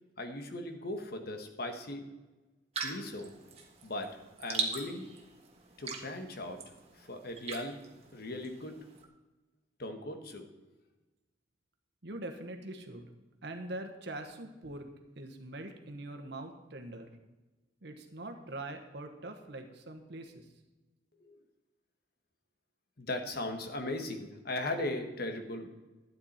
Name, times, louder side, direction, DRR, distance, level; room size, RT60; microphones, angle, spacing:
voice 1, 0.2-2.1 2.8-3.3 3.8-5.1 5.8-6.6 6.9-7.8 8.1-8.8 9.8-10.4 21.2-21.4 23.0-25.7, left 1 dB, 55° left, 6 dB, 1.3 m, -38 dB
sound 1, 2.7-9.0, right 4 dB, 35° right, 1.4 m, -41 dB
voice 2, 12.0-13.1 13.4-14.9 15.2-17.1 17.8-20.4, right 1 dB, 65° right, 5 dB, 1.3 m, -43 dB
12.0 x 9.3 x 4.3 m, 1.1 s
head